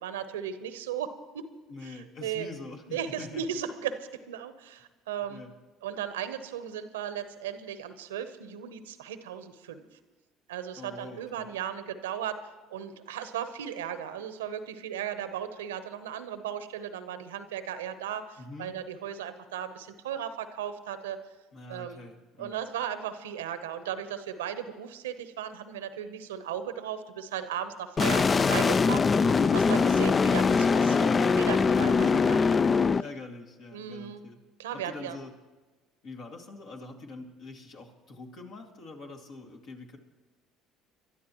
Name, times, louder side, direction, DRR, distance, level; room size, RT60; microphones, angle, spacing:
voice 1, 0.0-1.5 1.8-2.5 2.9-4.0 4.3-5.5 5.8-9.9 10.5-21.2 21.7-22.0 22.4-32.4 33.7-34.2 34.6-35.2, right 9 dB, 90° right, 11 dB, 0.9 m, -36 dB
voice 2, 1.7-3.4 5.3-5.5 10.8-11.5 18.4-18.7 21.5-22.5 31.5-32.5 33.0-34.4 34.7-35.3 36.0-40.0, left 3 dB, 60° left, 1 dB, 2.4 m, -44 dB
sound 1, 28.0-33.0, left 5 dB, 30° left, 0.3 m, -22 dB
24.5 x 12.5 x 3.1 m, 1.2 s
hypercardioid pair, 70°, 0 cm